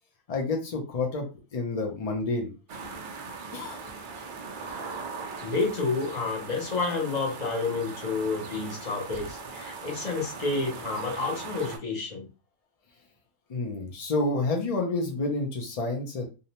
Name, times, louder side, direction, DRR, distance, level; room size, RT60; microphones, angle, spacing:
voice 1, 0.3-1.2 1.5-2.5 3.5-4.3 13.5-16.2, left 2 dB, 80° left, 2 dB, 0.3 m, -29 dB
sound 1, 2.7-11.8, right 4 dB, 85° right, 0.4 m, -40 dB
voice 2, 5.4-12.3, left 3 dB, 45° left, 1 dB, 0.6 m, -29 dB
2.6 x 2.0 x 2.8 m, 0.32 s
omnidirectional pair, 1.4 m